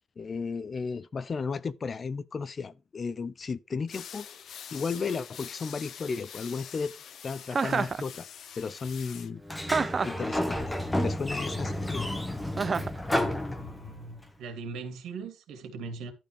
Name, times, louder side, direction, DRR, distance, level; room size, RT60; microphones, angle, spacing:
voice 1, 0.2-4.3 4.7-7.0 7.2-8.3 8.6-9.4 10.0-12.2, left 5 dB, 30° left, 0.5 m, -34 dB
sound 1, 3.9-9.3, left 8 dB, 55° left, 0.8 m, -45 dB
Chuckle chortle, 7.5-8.0 9.7-10.2 12.6-13.0, right 5 dB, 30° right, 0.4 m, -28 dB
Sliding door, 9.4-14.2, left 1 dB, 5° left, 1.1 m, -31 dB
voice 2, 13.6-16.1, right 4 dB, 90° right, 2.7 m, -40 dB
12.0 x 4.4 x 5.0 m
cardioid pair, 160°, 0 cm